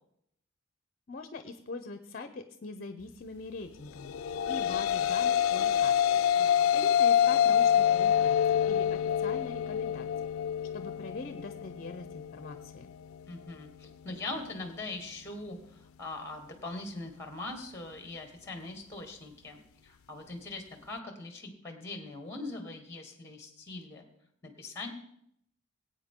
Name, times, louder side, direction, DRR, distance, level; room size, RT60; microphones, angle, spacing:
voice 1, 1.1-8.4 8.6-10.1 10.7-12.9, left 3 dB, 45° left, 9 dB, 0.7 m, -43 dB
sound 1, 4.0-12.6, left 9 dB, 80° left, 0.4 m, -26 dB
voice 2, 6.4-6.7 13.3-24.0 24.4-24.9, left 2 dB, 15° left, 5 dB, 1.5 m, -41 dB
19.0 x 8.7 x 3.7 m, 0.72 s
head